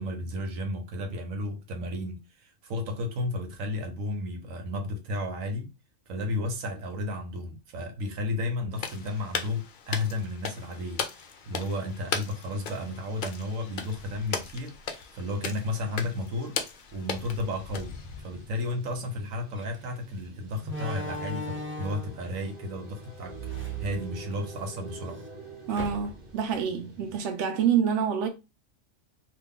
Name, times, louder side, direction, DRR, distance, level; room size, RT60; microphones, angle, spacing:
voice 1, 0.0-5.7 6.1-25.3, left 2 dB, 85° right, 1.2 m, -33 dB
sound 1, 8.7-18.5, left 6 dB, 60° left, 0.5 m, -37 dB
sound 2, 17.5-27.2, equal, 45° right, 1.2 m, -47 dB
Slam, 19.6-19.8 20.6-22.2 23.2-24.6 25.0-25.1 25.7-26.4, right 1 dB, 15° right, 0.4 m, -37 dB
voice 2, 25.7-28.3, right 7 dB, 70° right, 0.9 m, -27 dB
2.9 x 2.3 x 3.6 m
omnidirectional pair, 1.4 m